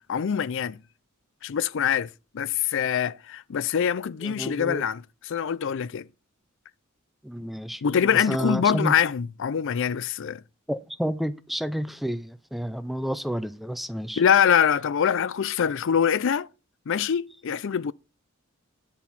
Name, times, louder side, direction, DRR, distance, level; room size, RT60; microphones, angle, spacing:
voice 1, 0.1-0.8 1.4-2.1 2.3-6.1 7.8-10.4 14.2-16.5 16.9-17.9, left 8 dB, 60° left, 0.4 m, -24 dB
voice 2, 4.2-4.8 7.2-8.9 10.7-14.2, equal, ahead, 0.4 m, -30 dB
10.5 x 4.3 x 7.0 m
head